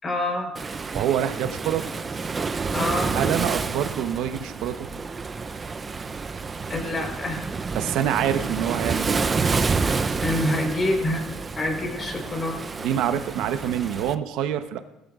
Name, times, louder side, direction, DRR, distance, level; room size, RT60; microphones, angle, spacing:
voice 1, 0.0-0.5 2.7-3.1 6.7-7.4 10.2-12.6, left 1 dB, 25° left, 2 dB, 4.2 m, -26 dB
Waves surf, 0.6-14.2, right 4 dB, 25° right, 0.6 m, -29 dB
voice 2, 0.9-1.8 3.1-4.9 7.7-9.2 12.8-14.8, right 10 dB, 70° right, 9 dB, 1.0 m, -26 dB
20.0 x 13.5 x 2.5 m, 0.97 s
cardioid pair, 110°, 0 cm